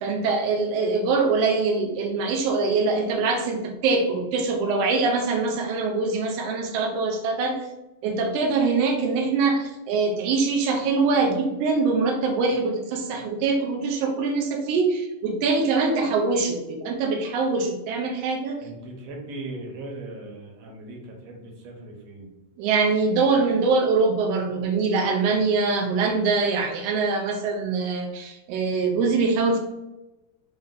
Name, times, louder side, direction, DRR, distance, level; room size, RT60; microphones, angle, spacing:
voice 1, 0.0-7.6 8.0-18.6 22.6-29.6, right 4 dB, 85° right, 2 dB, 1.4 m, -23 dB
voice 2, 18.6-22.3, right 2 dB, 65° right, 0 dB, 1.9 m, -38 dB
5.2 x 2.5 x 3.8 m, 0.97 s
omnidirectional pair, 3.4 m